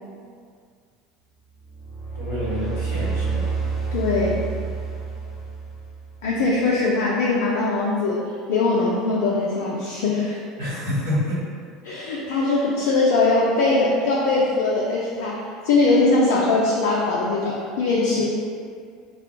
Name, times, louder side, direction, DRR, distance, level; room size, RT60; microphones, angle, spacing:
sound 1, 1.6-6.3, right 4 dB, 25° right, 0.6 m, -29 dB
voice 1, 2.1-3.5 10.6-11.5, left 1 dB, 90° right, -14 dB, 1.2 m, -27 dB
voice 2, 3.9-4.5 6.2-8.2 8.5-10.4 11.8-18.2, left 3 dB, 65° left, -5 dB, 0.3 m, -21 dB
2.3 x 2.1 x 3.0 m, 2.1 s
figure-of-eight pair, 70°, 0 cm